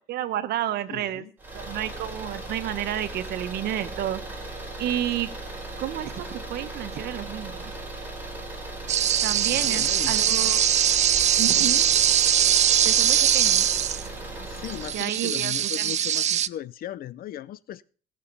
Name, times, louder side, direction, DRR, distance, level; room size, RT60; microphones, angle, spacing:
voice 1, 0.0-1.2 1.5-4.4 4.8-5.3 5.8-7.8 9.2-10.7 11.4-11.9 12.8-13.8 14.9-16.0, right 12 dB, 70° right, 1.3 m, -31 dB
voice 2, 0.9-1.3 9.5-10.2 12.5-12.7 14.5-17.8, left 11 dB, 60° left, 0.8 m, -37 dB
sound 1, 1.4-15.1, right 2 dB, 10° right, 4.9 m, -37 dB
sound 2, 8.9-14.1 14.6-16.5, right 10 dB, 40° right, 0.5 m, -22 dB
19.0 x 6.7 x 5.6 m
cardioid pair, 110°, 17 cm